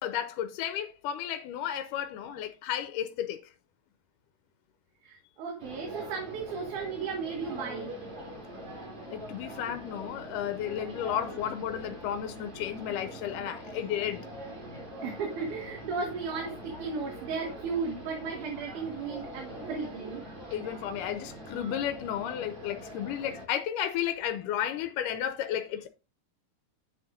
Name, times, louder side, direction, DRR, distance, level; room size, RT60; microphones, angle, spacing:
voice 1, 0.0-3.4 9.1-14.2 20.5-25.9, left 10 dB, 90° left, 2.3 m, -33 dB
voice 2, 5.0-7.9 15.0-20.2, right 5 dB, 70° right, 3.1 m, -35 dB
sound 1, 5.6-23.5, right 1 dB, 45° right, 4.0 m, -43 dB
10.5 x 8.0 x 2.5 m
omnidirectional pair, 3.7 m